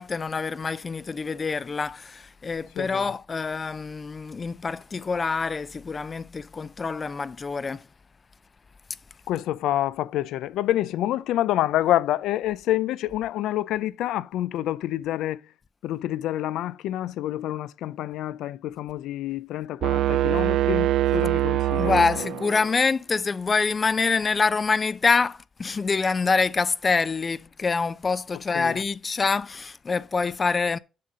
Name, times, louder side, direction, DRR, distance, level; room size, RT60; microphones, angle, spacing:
voice 1, 0.0-7.9 21.7-30.8, left 4 dB, 35° left, 0.5 m, -26 dB
voice 2, 9.3-15.4 15.8-22.3 28.5-28.8, left 13 dB, 85° left, 0.4 m, -27 dB
sound 1, 19.8-22.8, right 13 dB, 75° right, 0.4 m, -23 dB
7.5 x 5.7 x 5.0 m
cardioid pair, 90°, 0 cm